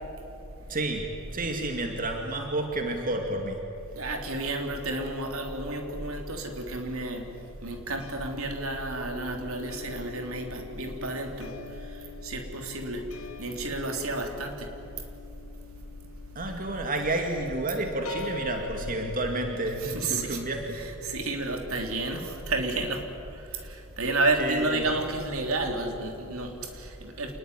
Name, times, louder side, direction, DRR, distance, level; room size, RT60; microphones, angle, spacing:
voice 1, 0.7-3.6 16.4-20.8 24.3-25.0, right 2 dB, 40° right, 3 dB, 2.3 m, -30 dB
sound 1, 2.5-5.1 5.4-20.2, left 4 dB, 70° left, 1.5 m, -45 dB
voice 2, 3.9-7.2 7.6-13.0 13.4-14.7 19.8-20.4 20.8-23.0 23.3-27.4, right 2 dB, 75° right, 3 dB, 3.6 m, -31 dB
27.5 x 20.5 x 10.0 m, 2.8 s
head